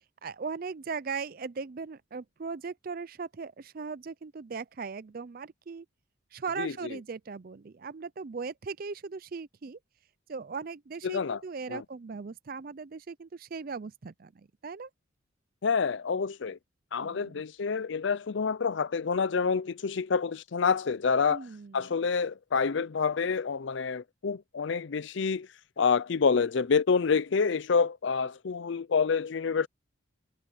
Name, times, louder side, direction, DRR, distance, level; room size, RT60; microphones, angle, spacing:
voice 1, 0.2-5.9 6.3-9.8 10.3-14.9 17.0-17.4 21.3-21.9, right 5 dB, 45° right, 0.4 m, -38 dB
voice 2, 11.0-11.4 11.7-11.8 15.6-16.6 16.9-21.4 21.7-25.5 25.8-29.7, left 5 dB, 65° left, 0.5 m, -27 dB
head